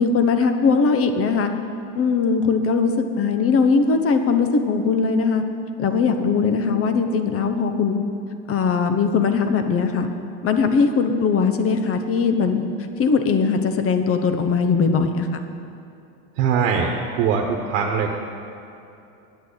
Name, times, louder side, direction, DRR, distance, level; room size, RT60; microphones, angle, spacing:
voice 1, 0.0-1.5 1.9-5.4 5.8-8.0 8.5-10.1 10.4-12.6 13.0-15.4, left 5 dB, 40° left, 7 dB, 1.1 m, -20 dB
voice 2, 16.3-16.9 17.2-18.2, right 6 dB, 70° right, 1 dB, 1.2 m, -21 dB
9.3 x 8.3 x 8.1 m, 2.7 s
supercardioid pair, 105°, 36 cm